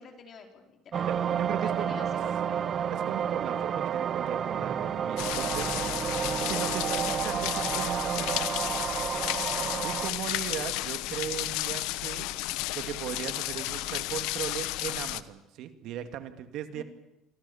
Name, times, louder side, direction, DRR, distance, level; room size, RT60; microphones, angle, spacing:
voice 1, 0.0-1.1 1.5-2.7 6.2-6.6 16.7-16.8, left 4 dB, 35° left, 4 dB, 4.7 m, -48 dB
sound 1, 0.9-10.1, right 8 dB, 35° right, 1.2 m, -30 dB
voice 2, 1.1-2.0 2.9-5.8 6.4-8.5 9.8-12.3 12.7-16.8, right 10 dB, 55° right, 9 dB, 2.1 m, -37 dB
sound 2, 5.2-15.2, left 17 dB, 80° left, 1.1 m, -32 dB
29.0 x 25.5 x 7.2 m, 0.84 s
cardioid pair, 160°, 0 cm